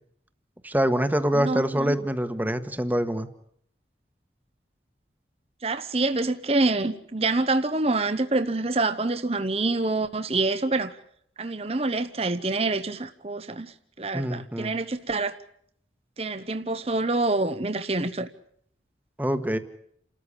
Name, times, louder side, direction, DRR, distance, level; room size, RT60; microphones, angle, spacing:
voice 1, 0.6-3.3 14.1-14.7 19.2-19.6, equal, 10° right, 1.4 m, -25 dB
voice 2, 1.3-2.0 5.6-10.9 11.4-15.4 16.2-18.3, right 2 dB, 35° right, 0.9 m, -26 dB
29.5 x 14.0 x 10.0 m
head